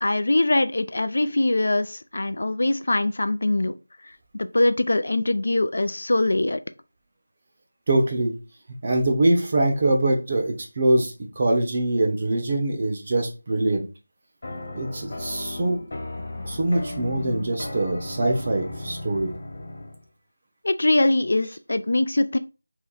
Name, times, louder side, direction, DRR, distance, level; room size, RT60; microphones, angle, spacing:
voice 1, 0.0-3.7 4.3-6.6 20.6-22.4, left 2 dB, 55° left, 0.3 m, -22 dB
voice 2, 7.9-8.3 8.8-13.9 14.7-15.8 16.4-19.3, right 2 dB, 30° right, 0.8 m, -23 dB
sound 1, 14.4-20.0, left 2 dB, 35° left, 1.1 m, -35 dB
3.0 x 2.9 x 3.8 m
figure-of-eight pair, 175°, 0 cm